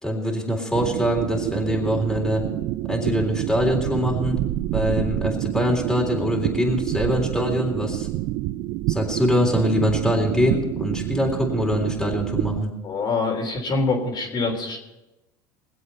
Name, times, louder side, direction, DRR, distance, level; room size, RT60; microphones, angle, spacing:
voice 1, 0.0-2.4 2.9-4.4 4.7-8.1 8.9-12.7, equal, 5° left, -1 dB, 3.7 m, -23 dB
sound 1, 0.7-12.6, right 16 dB, 60° right, 0.6 m, -28 dB
voice 2, 12.8-14.8, left 3 dB, 40° left, 0 dB, 3.5 m, -25 dB
22.0 x 7.9 x 5.6 m, 0.99 s
hypercardioid pair, 85°, 11 cm